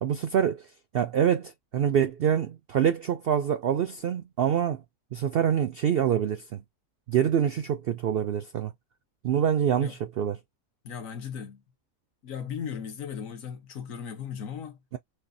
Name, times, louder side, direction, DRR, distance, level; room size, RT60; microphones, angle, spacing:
voice 1, 0.0-0.7 0.9-4.8 5.1-6.6 7.1-8.7 9.2-10.4, right 9 dB, 70° right, 0.5 m, -25 dB
voice 2, 10.8-11.6 12.2-14.8, left 7 dB, 65° left, 1.4 m, -37 dB
6.6 x 2.5 x 2.7 m
omnidirectional pair, 1.5 m